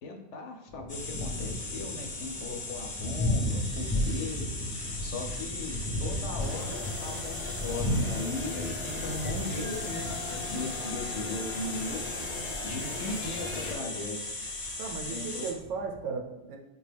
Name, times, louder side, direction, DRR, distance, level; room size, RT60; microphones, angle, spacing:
voice 1, 0.0-4.5 5.0-12.0 12.6-14.2 15.1-15.4, left 2 dB, 80° left, 4 dB, 0.9 m, -38 dB
Thunder, 0.7-16.0, left 1 dB, 5° left, 0.5 m, -35 dB
sound 1, 0.9-15.5, left 2 dB, 40° left, 0.8 m, -38 dB
sound 2, 6.4-13.8, left 3 dB, 55° left, 0.3 m, -39 dB
voice 2, 14.8-16.6, right 5 dB, 85° right, 2 dB, 0.9 m, -36 dB
4.9 x 2.2 x 3.3 m, 0.94 s
omnidirectional pair, 1.2 m